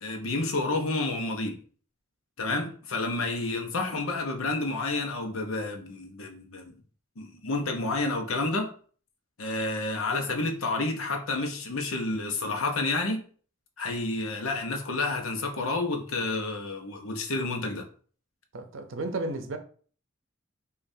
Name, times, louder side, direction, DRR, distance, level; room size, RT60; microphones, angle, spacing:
voice 1, 0.0-1.6 2.4-6.7 7.2-8.7 9.4-13.2 13.8-17.9, left 2 dB, 85° left, 0.8 m, -30 dB
voice 2, 18.5-19.6, right 2 dB, 70° right, 0.6 m, -33 dB
5.2 x 2.4 x 2.7 m
head